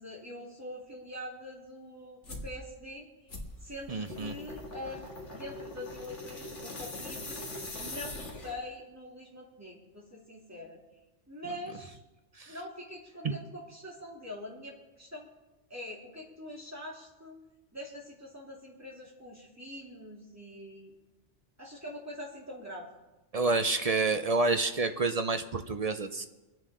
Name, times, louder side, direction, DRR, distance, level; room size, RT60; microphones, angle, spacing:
voice 1, 0.0-3.3 3.6-7.4 7.8-10.8 11.3-12.0 12.5-15.3 15.7-17.4 17.7-20.9 21.6-22.9, left 1 dB, 15° right, -3 dB, 3.0 m, -44 dB
sound 1, 2.2-2.5 3.3-8.7, left 2 dB, 85° left, 2.3 m, -42 dB
voice 2, 3.9-4.3 12.4-12.5 23.3-26.3, right 3 dB, 40° right, 8 dB, 0.6 m, -28 dB
25.5 x 9.1 x 3.8 m, 1.1 s
omnidirectional pair, 1.2 m